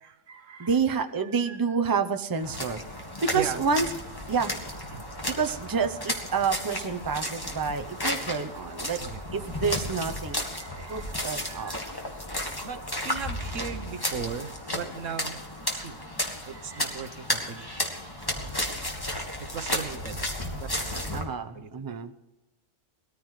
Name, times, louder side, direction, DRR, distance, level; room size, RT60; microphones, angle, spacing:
voice 1, 0.0-0.8 1.2-1.8 3.3-3.6 4.9-5.0 9.0-9.2 10.3-12.0 12.6-15.4 15.7-16.0 16.3-18.1 19.4-20.2 20.6-22.0, right 6 dB, 85° right, 9 dB, 1.3 m, -39 dB
voice 2, 0.6-2.8 3.2-3.9 4.3-4.5 5.2-9.0 9.3-10.5 10.9-11.7 21.1-22.1, right 5 dB, 20° right, 7 dB, 0.6 m, -28 dB
sound 1, 2.4-21.2, left 1 dB, 20° left, 1.9 m, -33 dB
20.5 x 14.0 x 3.2 m, 1.0 s
omnidirectional pair, 1.3 m